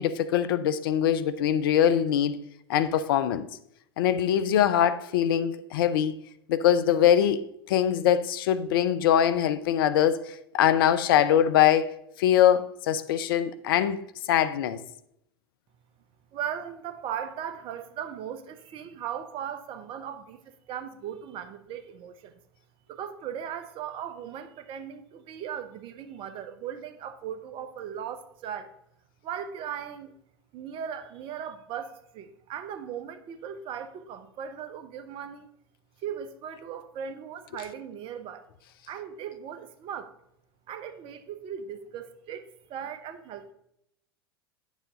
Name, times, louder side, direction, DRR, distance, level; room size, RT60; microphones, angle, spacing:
voice 1, 0.0-2.4 2.7-3.5 4.0-6.2 6.5-14.0 14.3-14.8, left 10 dB, 65° left, 0.7 m, -23 dB
voice 2, 16.3-22.4 22.9-28.7 29.2-30.2 30.5-35.5 36.0-38.5 38.9-40.1 40.7-43.5, right 8 dB, 45° right, 1.0 m, -38 dB
10.5 x 7.3 x 3.7 m
figure-of-eight pair, 85°, 13 cm